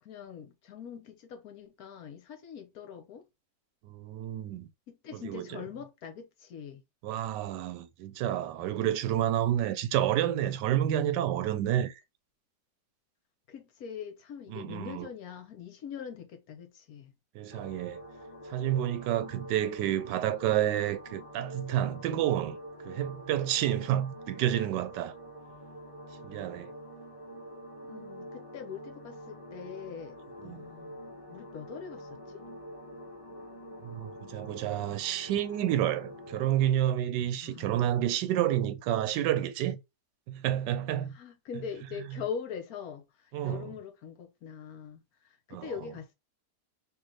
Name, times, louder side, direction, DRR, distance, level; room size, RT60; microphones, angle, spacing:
voice 1, 0.0-3.2 4.9-6.8 13.5-17.1 27.9-32.4 37.4-38.0 41.1-46.1, left 7 dB, 65° left, 1.1 m, -43 dB
voice 2, 3.8-4.7 5.1-5.6 7.0-12.0 14.5-15.1 17.3-18.0 18.5-22.6 22.8-25.2 26.2-26.7 30.4-30.7 33.8-39.8 40.3-41.2 43.3-43.7 45.5-45.7, right 11 dB, 85° right, 1.2 m, -29 dB
sound 1, 17.5-36.7, equal, 30° left, 0.6 m, -46 dB
3.2 x 2.9 x 3.7 m
omnidirectional pair, 1.8 m